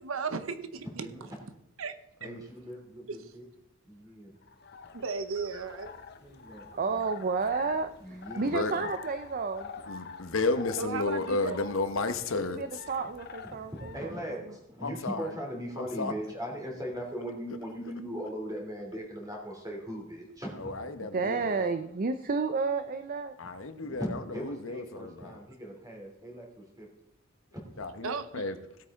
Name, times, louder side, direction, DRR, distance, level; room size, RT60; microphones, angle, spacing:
voice 1, 0.0-1.1 1.8-1.9 3.1-3.2 4.9-5.9 10.8-11.6 28.0-28.4, right 4 dB, 90° right, 10 dB, 0.8 m, -35 dB
voice 2, 1.0-1.3 2.2-3.5 3.8-4.3 6.2-7.0 8.0-8.9 13.0-13.1 13.4-20.7 23.9-26.9 27.5-27.8, equal, 20° right, 0 dB, 3.0 m, -39 dB
sound 1, 4.4-14.2, left 5 dB, 55° left, 0.9 m, -46 dB
voice 3, 6.7-9.7 12.6-13.9 21.1-23.3, right 4 dB, 45° right, 9 dB, 0.5 m, -31 dB
voice 4, 8.4-8.9 9.8-12.8 14.8-15.4 15.8-16.1 20.6-21.7 23.4-25.4 27.8-28.6, left 3 dB, 75° left, 9 dB, 1.0 m, -33 dB
17.0 x 8.5 x 3.7 m, 0.81 s
head